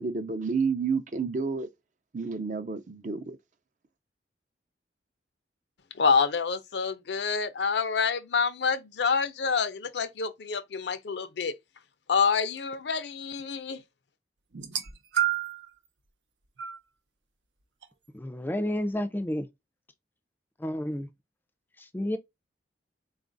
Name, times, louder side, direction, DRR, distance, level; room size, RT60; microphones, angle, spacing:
voice 1, 0.0-1.7 2.1-3.4, right 5 dB, 45° right, 0.5 m, -30 dB
voice 2, 6.0-11.6 12.1-13.8, left 5 dB, 70° left, 0.5 m, -27 dB
sound 1, 14.5-15.7 16.6-16.8 17.8-17.9, right 11 dB, 80° right, 0.7 m, -29 dB
voice 3, 18.1-19.5 20.6-21.1 21.8-22.2, left 1 dB, 10° left, 0.5 m, -30 dB
3.9 x 2.4 x 3.8 m
head